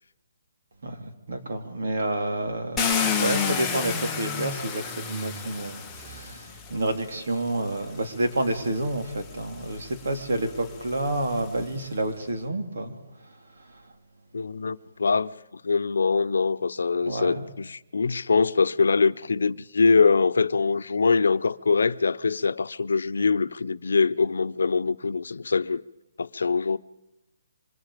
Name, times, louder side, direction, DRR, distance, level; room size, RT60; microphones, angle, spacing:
voice 1, 0.8-12.9 17.0-17.4, right 1 dB, 60° right, 3.6 m, -29 dB
Car, 2.8-6.9 7.8-7.9 8.4-11.7, left 6 dB, 5° left, 0.9 m, -31 dB
voice 2, 14.3-25.8 26.2-26.8, left 4 dB, 85° left, 0.8 m, -23 dB
27.0 x 25.0 x 5.2 m
hypercardioid pair, 180°, 0 cm